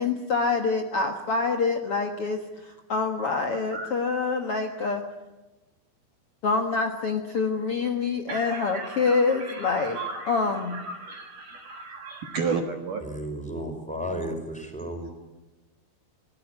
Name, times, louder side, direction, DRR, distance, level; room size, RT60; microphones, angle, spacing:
voice 1, 0.0-2.4 2.9-5.0 6.4-10.0 10.3-10.8, left 4 dB, 80° left, 4 dB, 1.2 m, -26 dB
voice 2, 8.3-13.0, right 4 dB, 55° right, 4 dB, 2.5 m, -34 dB
voice 3, 13.0-15.1, equal, ahead, 4 dB, 4.6 m, -33 dB
25.0 x 17.5 x 9.7 m, 1.1 s
omnidirectional pair, 5.3 m